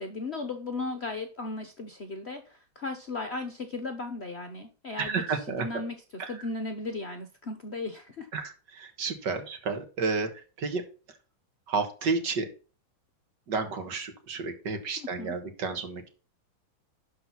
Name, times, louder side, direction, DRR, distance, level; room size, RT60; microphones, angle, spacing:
voice 1, 0.0-8.3 15.0-15.4, left 3 dB, 45° left, 6 dB, 0.9 m, -36 dB
voice 2, 5.0-5.7 6.2-6.3 8.3-10.3 10.6-10.8 11.7-12.5 13.5-16.1, right 4 dB, 60° right, 7 dB, 2.1 m, -31 dB
11.5 x 4.5 x 5.7 m, 0.35 s
omnidirectional pair, 2.2 m